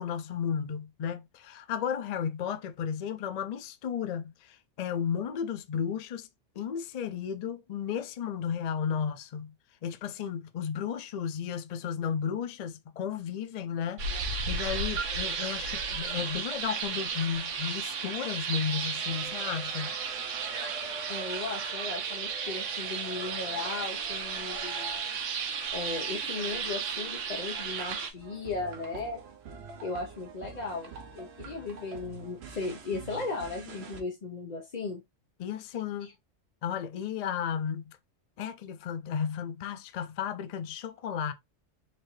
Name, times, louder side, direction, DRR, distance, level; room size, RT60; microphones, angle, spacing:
voice 1, 0.0-6.3 6.6-9.5 9.8-14.0 14.5-19.9 35.4-36.1 36.6-38.0 38.4-41.3, left 7 dB, 70° left, 0.3 m, -33 dB
sound 1, 14.0-28.1, right 5 dB, 80° right, 1.2 m, -34 dB
sound 2, 18.8-25.0, right 2 dB, 40° right, 0.5 m, -45 dB
voice 2, 21.1-24.9 25.7-29.2 29.8-35.0 36.0-36.1, left 3 dB, 40° left, 0.8 m, -36 dB
sound 3, 28.1-34.0, right 5 dB, 60° right, 0.9 m, -46 dB
4.2 x 2.6 x 3.1 m
omnidirectional pair, 1.3 m